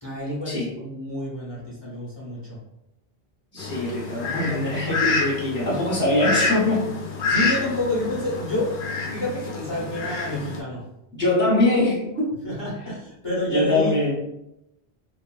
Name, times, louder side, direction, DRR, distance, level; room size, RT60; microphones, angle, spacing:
voice 1, 0.0-2.6 7.2-8.7 9.1-10.8 12.4-14.0, left 1 dB, 25° left, -6 dB, 0.8 m, -29 dB
voice 2, 3.5-6.9 7.4-7.5 11.1-12.3 13.5-14.1, left 2 dB, 15° right, -7 dB, 0.6 m, -23 dB
Fowl, 3.6-10.6, left 3 dB, 65° left, 0.7 m, -28 dB
2.9 x 2.4 x 2.3 m, 0.87 s
omnidirectional pair, 1.1 m